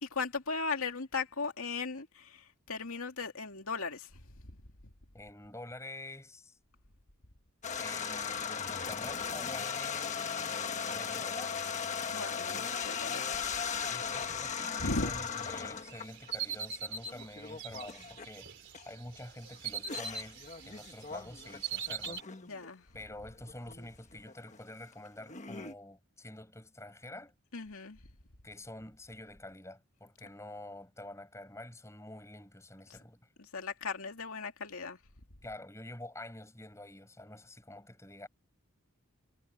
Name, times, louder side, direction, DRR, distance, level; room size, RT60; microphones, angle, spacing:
voice 1, 0.0-4.1 12.1-13.2 14.8-15.1 22.5-22.8 27.5-28.0 33.4-35.0, left 4 dB, 75° left, 2.5 m, -37 dB
voice 2, 5.1-6.6 7.8-11.6 13.8-22.2 22.9-27.3 28.4-33.2 35.4-38.3, left 1 dB, 15° left, 5.6 m, -48 dB
sound 1, 7.6-16.6 17.1-18.3 18.7-18.9 19.7-22.7 23.2-23.9 24.1-25.7, left 6 dB, 35° left, 1.4 m, -37 dB
sound 2, 15.5-18.7 19.1-20.9 21.2-22.2, right 6 dB, 55° right, 5.0 m, -40 dB
head